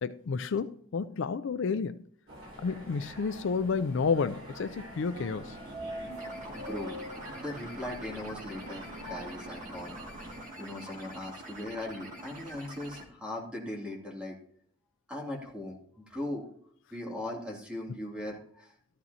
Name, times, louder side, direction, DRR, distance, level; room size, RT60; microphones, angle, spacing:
voice 1, 0.0-2.0 2.6-5.6, left 5 dB, 60° left, 0.4 m, -31 dB
sound 1, 2.3-10.4, equal, 75° right, 5.1 m, -44 dB
sound 2, 5.1-13.0, right 1 dB, 40° right, 2.1 m, -46 dB
voice 2, 6.5-14.4 15.1-16.5 16.9-18.7, left 1 dB, 5° right, 2.5 m, -39 dB
13.5 x 12.0 x 2.8 m
head